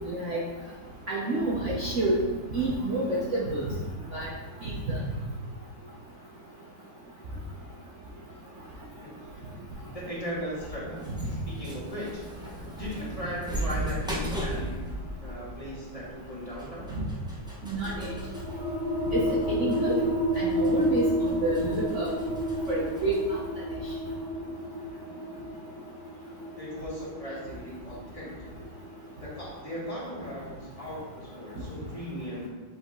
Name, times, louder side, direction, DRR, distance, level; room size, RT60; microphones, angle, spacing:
voice 1, 0.1-0.4 1.1-2.2 2.5-3.6 4.1-4.3 4.6-5.0 17.7-18.1 19.1-19.2 19.5-19.9 20.3-22.1 22.7-23.2, right 2 dB, 50° right, -5 dB, 1.0 m, -28 dB
sound 1, 9.7-23.2, equal, 5° right, 0.4 m, -39 dB
voice 2, 9.9-11.0 11.5-12.2 12.7-14.8 15.2-16.9 26.5-28.5 29.2-32.5, equal, 20° left, -7 dB, 1.8 m, -37 dB
sound 2, 17.8-29.1, equal, 25° right, 1.3 m, -31 dB
7.6 x 4.1 x 3.6 m, 1.3 s
omnidirectional pair, 2.1 m